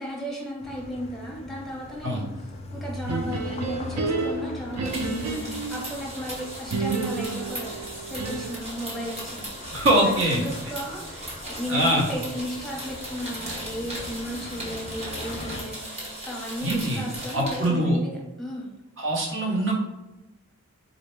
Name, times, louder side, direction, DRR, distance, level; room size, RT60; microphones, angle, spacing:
voice 1, 0.0-9.5 10.0-18.7, equal, ahead, -4 dB, 0.8 m, -35 dB
sound 1, 0.6-15.6, left 1 dB, 30° left, 0.3 m, -41 dB
sound 2, 3.0-5.8 6.7-8.7, right 4 dB, 85° right, 0.5 m, -30 dB
sound 3, 4.7-17.7, right 1 dB, 30° right, 0.9 m, -38 dB
voice 2, 9.7-10.4 11.7-12.0 16.6-17.0 17.3-18.0 19.0-19.7, right 1 dB, 60° right, -1 dB, 0.9 m, -23 dB
3.9 x 2.1 x 3.2 m, 0.94 s
head